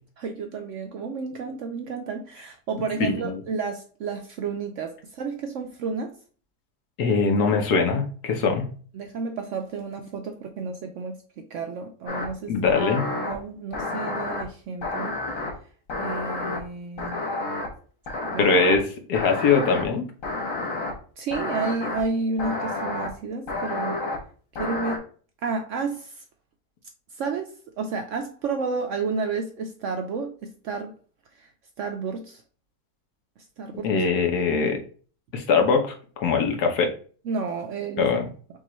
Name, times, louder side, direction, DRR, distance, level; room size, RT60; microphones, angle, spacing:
voice 1, 0.2-6.2 8.9-12.5 13.1-15.2 16.0-17.3 18.2-18.5 21.2-24.0 24.6-25.1 25.4-26.2 27.2-30.9 31.4-31.5 31.8-32.4 33.6-33.9 37.2-38.1, right 4 dB, 70° right, 0.7 m, -31 dB
voice 2, 3.0-3.3 7.0-8.7 12.5-13.0 18.4-20.1 33.8-34.8 35.3-36.9 38.0-38.3, left 4 dB, 75° left, 1.4 m, -22 dB
sound 1, 12.1-12.3 12.6-13.3 13.7-14.4 14.8-15.5 15.9-16.6 17.0-17.7 18.1-18.8 19.1-19.8 20.2-20.9 21.3-22.0 22.4-23.1 23.5-24.2 24.5-25.0, left 2 dB, 60° left, 1.4 m, -30 dB
5.8 x 2.4 x 3.0 m
omnidirectional pair, 1.7 m